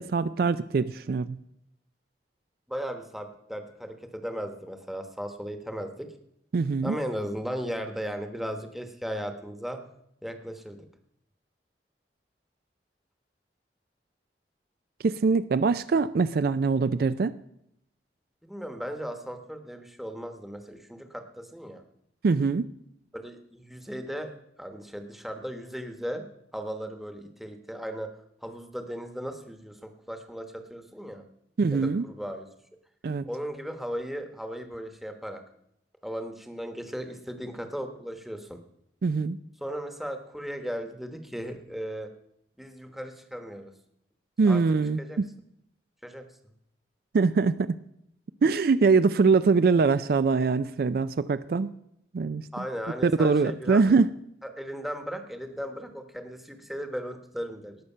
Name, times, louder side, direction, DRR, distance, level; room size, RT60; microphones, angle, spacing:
voice 1, 0.0-1.4 6.5-7.0 15.0-17.3 22.2-22.7 31.6-32.1 33.0-33.3 39.0-39.4 44.4-45.3 47.1-47.7 48.4-51.7 52.1-52.6 53.0-54.1, right 4 dB, 55° right, 13 dB, 0.4 m, -23 dB
voice 2, 2.7-6.1 6.8-9.8 10.2-10.9 18.4-21.8 23.1-24.3 24.6-26.2 26.5-28.1 28.4-31.3 31.7-32.5 33.2-35.4 36.0-38.6 39.6-42.1 42.6-43.7 44.4-44.6 45.0-45.2 46.0-46.2 52.5-53.8 54.6-57.8, equal, ahead, 6 dB, 1.1 m, -36 dB
18.5 x 6.5 x 5.5 m, 0.75 s
head